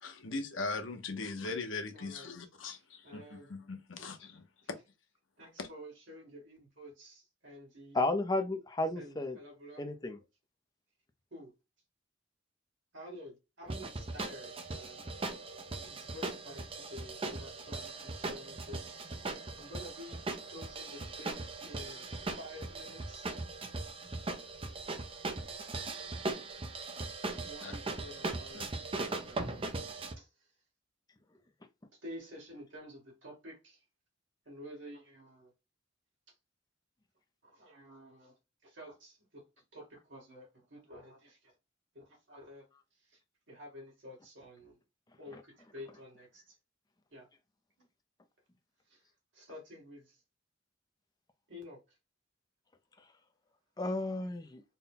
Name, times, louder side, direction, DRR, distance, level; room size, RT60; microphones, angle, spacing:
voice 1, 0.0-3.2 3.5-4.8 5.6-5.7 27.6-27.8 28.5-28.7, left 3 dB, 85° left, 0.9 m, -40 dB
voice 2, 1.9-2.5 3.0-3.5 4.0-4.1 4.6-4.7 5.4-8.0 9.0-9.9 11.3-11.5 12.9-15.0 15.7-18.9 19.6-21.3 21.6-23.3 27.4-29.6 30.2-30.3 31.9-33.8 34.5-35.5 37.4-38.3 38.6-39.4 39.7-41.5 41.9-42.7 43.0-43.2 43.5-44.8 45.2-46.6 47.1-47.3 48.9-49.0 49.3-50.2 51.5-51.8, left 1 dB, 70° right, 2.1 m, -50 dB
voice 3, 7.9-9.4 9.8-10.2 53.8-54.6, left 2 dB, 20° left, 0.5 m, -32 dB
sound 1, 13.7-30.1, right 3 dB, 30° right, 0.5 m, -39 dB
4.2 x 2.2 x 3.8 m
head